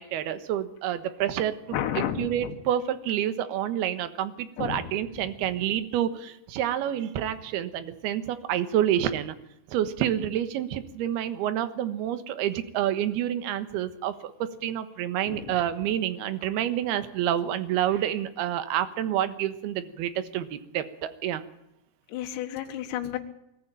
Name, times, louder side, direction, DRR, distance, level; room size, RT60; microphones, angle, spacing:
voice 1, 0.0-9.3 9.7-21.4, right 11 dB, 70° right, 11 dB, 3.0 m, -28 dB
voice 2, 1.7-2.5 4.6-4.9 15.3-15.6 22.1-23.2, left 11 dB, 75° left, 3 dB, 3.6 m, -31 dB
21.5 x 14.0 x 8.9 m, 0.84 s
omnidirectional pair, 5.3 m